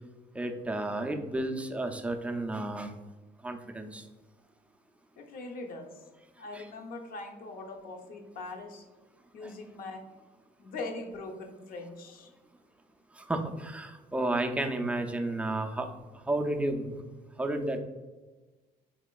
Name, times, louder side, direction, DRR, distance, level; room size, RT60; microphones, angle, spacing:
voice 1, 0.3-2.9 3.4-4.0 6.5-6.7 9.4-9.5 13.2-15.9 16.3-16.9 17.4-17.8, right 2 dB, 5° right, 4 dB, 0.3 m, -32 dB
voice 2, 5.2-6.0 6.4-8.8 9.3-10.0 10.6-12.3, left 3 dB, 60° left, 3 dB, 0.6 m, -41 dB
4.2 x 2.8 x 2.2 m, 1.2 s
cardioid pair, 110°, 17 cm